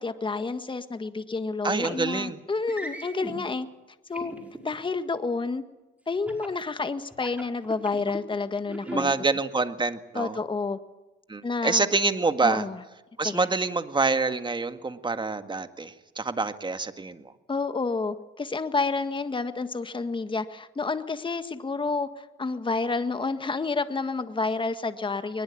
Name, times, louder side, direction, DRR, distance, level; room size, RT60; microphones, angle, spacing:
voice 1, 0.0-3.7 4.1-4.3 4.6-5.6 6.1-9.1 10.1-10.8 11.4-11.8 12.4-12.8 13.2-13.5 17.5-25.4, left 4 dB, 25° left, 10 dB, 1.6 m, -29 dB
voice 2, 1.6-2.4 8.9-10.4 11.3-12.7 13.2-17.3, right 3 dB, 25° right, 9 dB, 1.8 m, -26 dB
sound 1, 1.8-2.0 2.7-3.4 4.1-4.8 6.3-6.6 7.1-8.2 8.7-9.1, right 1 dB, 5° right, 5.2 m, -38 dB
22.5 x 20.5 x 8.6 m, 1.0 s
cardioid pair, 90°, 20 cm